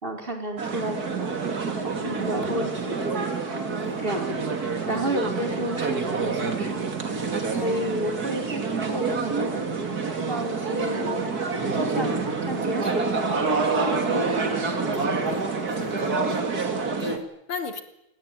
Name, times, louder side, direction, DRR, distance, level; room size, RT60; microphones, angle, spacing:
voice 1, 0.0-3.3 4.0-4.3 4.9-6.9 7.5-9.7 10.1-11.4 11.7-14.3 14.9-15.1 15.8-16.9, right 1 dB, 25° right, 4 dB, 5.0 m, -32 dB
sound 1, 0.6-17.2, right 4 dB, 45° right, 3.2 m, -27 dB
voice 2, 3.7-4.1 4.9-5.1 7.5-7.9 11.9-12.3 14.1-14.4 14.6-16.1 17.0-17.8, left 5 dB, 85° left, 8 dB, 3.5 m, -38 dB
27.5 x 19.5 x 9.2 m, 0.83 s
omnidirectional pair, 2.3 m